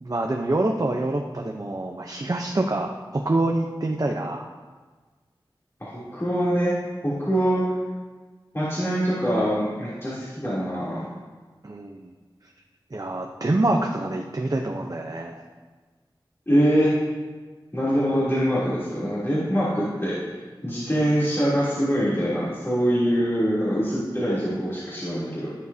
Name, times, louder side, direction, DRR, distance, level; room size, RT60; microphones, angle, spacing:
voice 1, 0.0-4.5 11.6-12.1 12.9-15.4, right 2 dB, 45° right, 1 dB, 0.8 m, -26 dB
voice 2, 5.8-6.7 7.0-7.6 8.5-11.0 16.5-16.9 17.7-20.1 20.6-25.5, equal, 30° left, -10 dB, 3.2 m, -24 dB
16.5 x 7.3 x 2.8 m, 1.4 s
wide cardioid pair, 55°, 9 cm